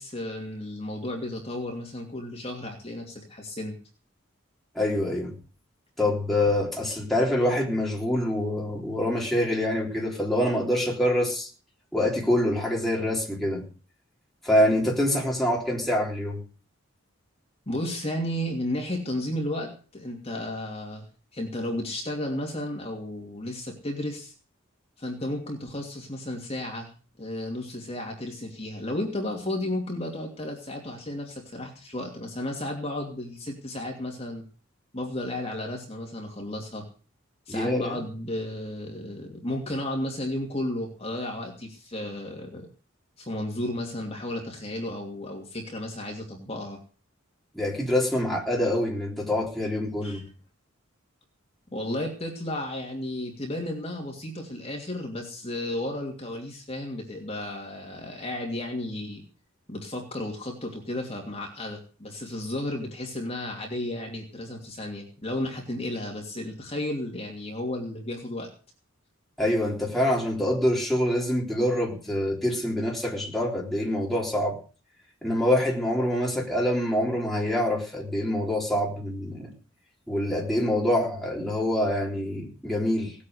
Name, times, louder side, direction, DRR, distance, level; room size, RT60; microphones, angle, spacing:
voice 1, 0.0-3.8 17.7-21.1 21.3-24.3 25.0-26.9 27.2-34.4 34.9-36.8 37.5-42.7 43.2-46.8 50.0-50.2 51.7-59.2 59.7-68.5, left 1 dB, 30° left, 0 dB, 2.7 m, -33 dB
voice 2, 4.8-5.3 6.0-11.5 11.9-13.6 14.4-16.4 37.5-38.0 47.5-50.2 69.4-74.6 75.2-79.5 80.1-83.1, left 1 dB, ahead, -3 dB, 3.7 m, -25 dB
18.5 x 8.6 x 6.5 m, 0.39 s
head